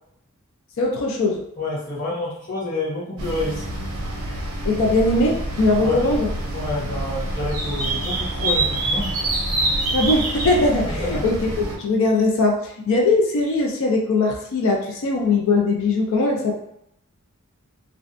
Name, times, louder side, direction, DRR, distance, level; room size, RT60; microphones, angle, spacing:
voice 1, 0.8-1.4 4.7-6.3 9.9-16.5, left 2 dB, 60° left, 0 dB, 0.4 m, -20 dB
voice 2, 1.6-3.6 5.8-6.0 6.5-9.1 10.8-11.2, left 2 dB, 40° left, -7 dB, 1.0 m, -28 dB
sound 1, 3.2-11.8, right 2 dB, 70° right, 0.6 m, -26 dB
2.5 x 2.1 x 2.5 m, 0.78 s
head